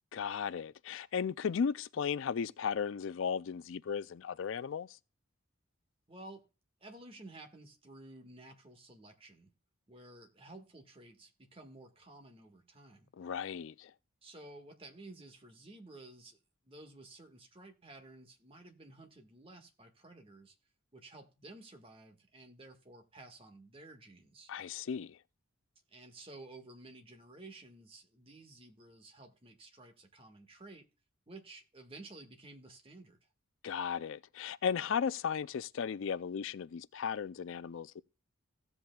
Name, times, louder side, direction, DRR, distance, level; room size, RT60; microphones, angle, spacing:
voice 1, 0.1-5.0 13.2-13.9 24.5-25.2 33.6-38.0, left 7 dB, 65° left, 0.4 m, -35 dB
voice 2, 6.1-6.5 6.8-9.5 9.9-13.1 14.2-16.4 16.6-20.6 20.9-24.5 25.9-30.9 31.3-33.3, right 2 dB, 25° right, 1.6 m, -53 dB
16.0 x 8.0 x 2.3 m
head